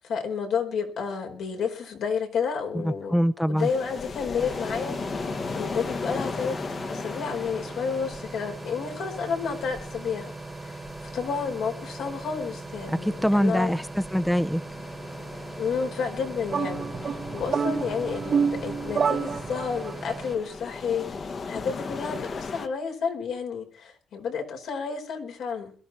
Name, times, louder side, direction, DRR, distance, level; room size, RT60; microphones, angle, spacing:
voice 1, 0.0-3.2 3.5-6.6 6.9-10.3 10.6-13.7 15.6-25.7, left 6 dB, 75° left, 4.7 m, -31 dB
voice 2, 2.8-3.7 12.9-14.6, equal, 5° left, 0.8 m, -24 dB
sound 1, 3.6-22.7, left 4 dB, 45° left, 1.5 m, -38 dB
sound 2, 4.4-20.4, right 3 dB, 20° right, 1.5 m, -40 dB
sound 3, 16.5-20.0, right 6 dB, 45° right, 1.1 m, -28 dB
21.5 x 13.5 x 4.4 m
cardioid pair, 90°, 0 cm